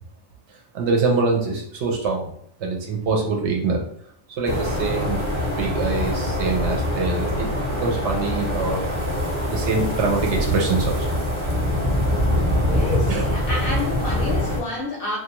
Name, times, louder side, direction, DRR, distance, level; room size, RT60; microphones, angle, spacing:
voice 1, 0.7-2.3 2.6-3.8 4.4-5.2 5.6-8.9 9.5-11.2 13.1-13.3, right 3 dB, 70° right, 0 dB, 0.9 m, -24 dB
sound 1, 4.4-14.6, left 1 dB, 25° right, 0.7 m, -24 dB
voice 2, 12.7-15.2, left 2 dB, 60° left, -2 dB, 0.6 m, -29 dB
2.4 x 2.2 x 2.9 m, 0.68 s
omnidirectional pair, 1.3 m